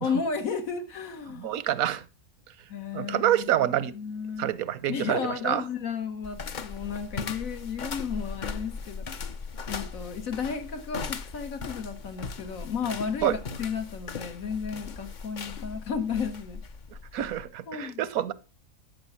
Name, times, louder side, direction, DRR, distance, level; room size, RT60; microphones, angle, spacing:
voice 1, 0.0-1.5 2.7-4.5 4.9-9.1 9.7-16.6 17.7-18.1, left 6 dB, 75° left, 1.9 m, -33 dB
voice 2, 1.4-2.0 2.9-3.9 4.4-5.2 5.4-5.6 13.2-13.3 17.1-18.3, right 12 dB, 85° right, 1.2 m, -26 dB
sound 1, 6.2-17.5, left 5 dB, 45° left, 0.7 m, -38 dB
13.0 x 5.7 x 7.3 m
omnidirectional pair, 1.4 m